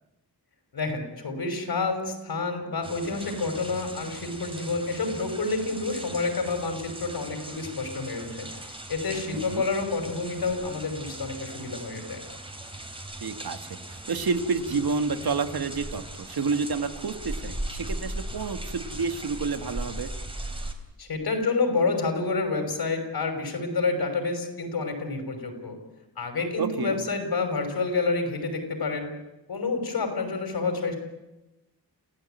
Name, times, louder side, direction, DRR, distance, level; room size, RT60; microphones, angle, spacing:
voice 1, 0.7-8.5 8.9-12.2 21.0-25.8 26.2-29.1 29.5-31.0, left 3 dB, 70° left, 6 dB, 5.9 m, -28 dB
sound 1, 2.8-20.7, right 1 dB, 15° right, 3.4 m, -39 dB
voice 2, 9.3-9.6 13.2-20.1 26.6-27.0, right 4 dB, 70° right, 8 dB, 1.9 m, -29 dB
29.0 x 16.0 x 9.2 m, 0.99 s
wide cardioid pair, 120°, 39 cm